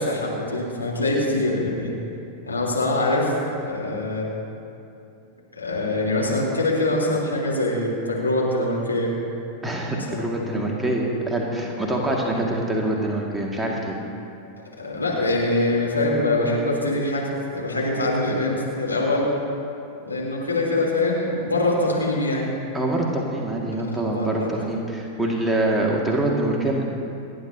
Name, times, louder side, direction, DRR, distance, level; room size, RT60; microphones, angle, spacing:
voice 1, 0.0-1.9 2.5-3.3 3.6-4.3 5.6-9.1 9.9-10.3 11.9-12.4 14.8-19.3 20.0-22.5 24.1-24.5, left 2 dB, 80° left, -4 dB, 3.6 m, -24 dB
voice 2, 9.6-14.0 22.7-26.8, right 1 dB, 5° right, -2 dB, 2.0 m, -25 dB
29.5 x 10.5 x 2.8 m, 2.6 s
figure-of-eight pair, 90°, 0 cm